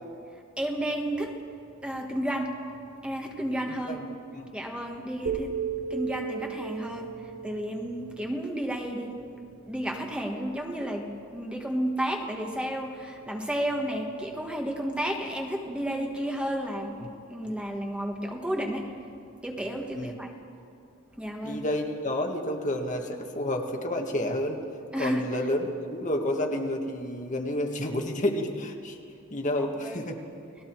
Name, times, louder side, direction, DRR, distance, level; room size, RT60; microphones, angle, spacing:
voice 1, 0.6-1.3 1.8-2.6 3.0-4.0 4.5-5.5 5.9-7.1 7.4-9.2 9.6-11.1 11.3-18.9 19.4-20.3 21.2-21.6 24.9-25.2 29.8-30.0, right 1 dB, 5° right, 1 dB, 1.5 m, -32 dB
voice 2, 3.7-4.5 19.9-20.1 21.4-24.6 24.9-29.0 29.3-30.2, left 1 dB, 40° left, 3 dB, 1.7 m, -30 dB
sound 1, 5.3-9.3, right 6 dB, 80° right, 2.0 m, -36 dB
30.0 x 19.5 x 4.7 m, 2.5 s
head